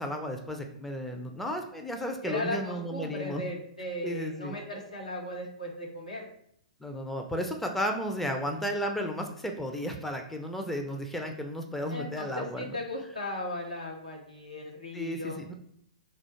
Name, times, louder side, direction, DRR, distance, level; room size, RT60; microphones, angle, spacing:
voice 1, 0.0-3.4 4.0-4.6 6.8-12.8 14.9-15.5, equal, 5° left, 4 dB, 0.5 m, -33 dB
voice 2, 2.2-6.3 11.9-15.4, left 1 dB, 85° left, -2 dB, 1.5 m, -37 dB
4.5 x 2.4 x 4.4 m, 0.69 s
figure-of-eight pair, 115°, 4 cm